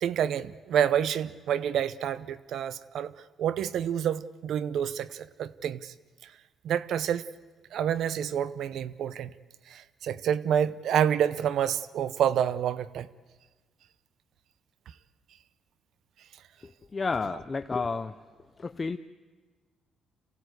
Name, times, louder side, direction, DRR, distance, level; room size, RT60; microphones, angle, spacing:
voice 1, 0.0-3.1 3.4-5.9 6.6-7.2 7.7-9.3 9.7-13.1, right 9 dB, 70° right, 16 dB, 0.7 m, -28 dB
voice 2, 16.6-18.2 18.6-19.0, left 4 dB, 30° left, 9 dB, 0.6 m, -31 dB
26.5 x 16.0 x 8.0 m, 1.3 s
cardioid pair, 95°, 0 cm